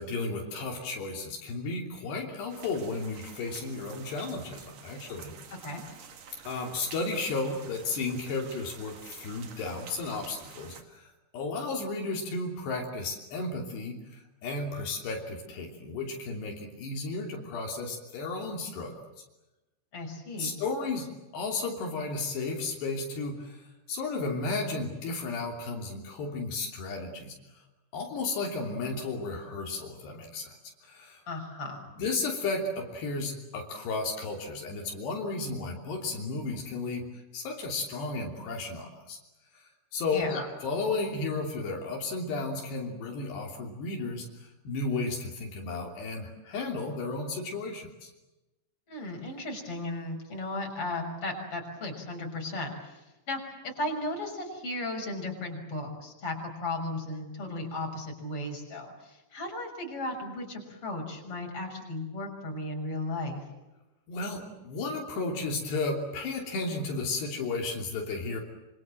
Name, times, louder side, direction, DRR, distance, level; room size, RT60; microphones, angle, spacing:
voice 1, 0.0-5.3 6.5-19.0 20.4-21.1 21.3-23.6 23.9-27.4 27.9-30.6 30.8-31.2 32.0-37.1 37.3-39.2 39.9-48.1 64.1-68.4, left 3 dB, 80° left, 1 dB, 5.2 m, -33 dB
sound 1, 2.5-10.8, right 6 dB, 50° right, 2.7 m, -49 dB
voice 2, 5.5-5.8 19.9-20.5 31.3-31.9 40.1-40.4 48.9-63.4, left 2 dB, 35° left, 1 dB, 7.0 m, -35 dB
26.5 x 26.5 x 7.7 m, 1.0 s
omnidirectional pair, 4.8 m